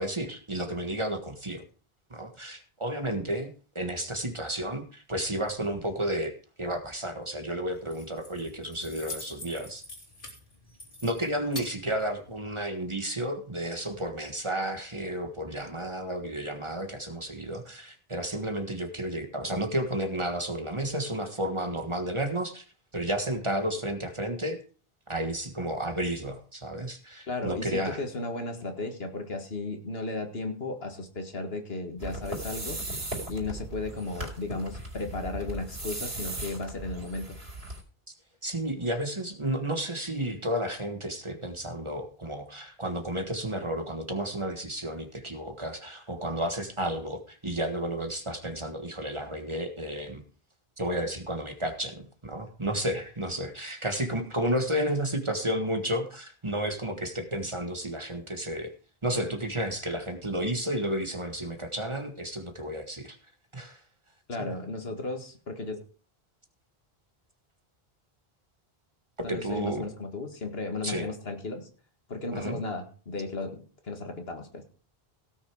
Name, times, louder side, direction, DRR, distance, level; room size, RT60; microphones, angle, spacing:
voice 1, 0.0-1.6 2.1-9.8 11.0-22.6 22.9-24.6 25.1-28.0 38.4-50.2 50.8-58.7 59.0-63.2 63.5-63.8 69.3-69.9 70.8-71.1 72.3-72.6, right 1 dB, 30° right, 6 dB, 1.5 m, -32 dB
Keys jangling, 7.7-12.7, left 2 dB, 55° left, 3.0 m, -45 dB
voice 2, 27.3-32.8 33.3-37.4 64.3-65.8 69.2-71.7 72.1-74.6, left 3 dB, 75° left, 5 dB, 2.1 m, -35 dB
sound 1, 32.0-37.8, right 2 dB, 80° right, 4.3 m, -37 dB
17.0 x 6.5 x 4.8 m, 0.38 s
omnidirectional pair, 1.0 m